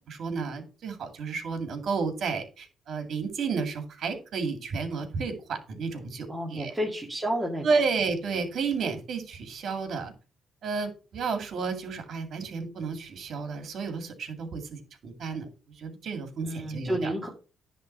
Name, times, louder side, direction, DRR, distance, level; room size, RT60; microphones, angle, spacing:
voice 1, 0.1-6.7 7.6-10.1 10.6-15.5 15.8-17.3, right 5 dB, 65° right, 6 dB, 2.2 m, -32 dB
voice 2, 6.3-7.7 16.4-17.3, equal, 10° right, -2 dB, 2.0 m, -30 dB
10.0 x 3.6 x 6.5 m, 0.34 s
cardioid pair, 90°, 0 cm